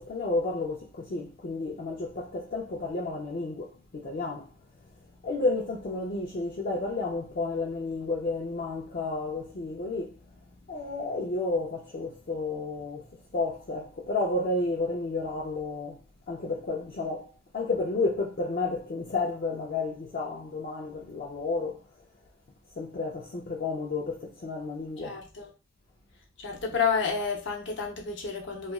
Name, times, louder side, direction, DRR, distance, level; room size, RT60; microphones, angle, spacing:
voice 1, 0.0-4.5 4.8-4.9 5.2-10.2 10.7-16.0 16.3-21.8 22.8-25.2, left 3 dB, 45° left, 0.4 m, -31 dB
voice 2, 25.0-25.5 26.4-28.7, left 5 dB, 60° left, 0.7 m, -30 dB
2.9 x 2.4 x 2.3 m
head